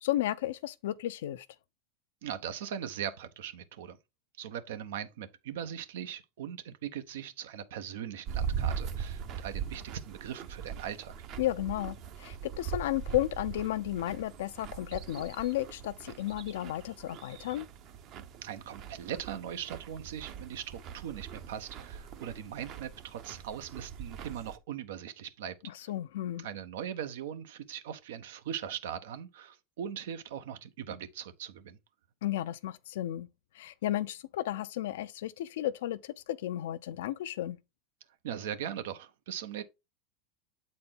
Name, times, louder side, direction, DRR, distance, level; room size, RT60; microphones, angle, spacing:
voice 1, 0.0-1.5 11.4-17.7 25.6-26.5 32.2-33.3 33.5-37.6, left 13 dB, 80° left, 0.5 m, -33 dB
voice 2, 2.2-4.0 4.4-11.1 18.4-25.9 26.4-31.8 38.2-39.6, right 9 dB, 80° right, 0.9 m, -40 dB
sound 1, 8.3-24.6, right 7 dB, 45° right, 0.8 m, -41 dB
7.7 x 4.2 x 3.6 m
supercardioid pair, 125°, 0 cm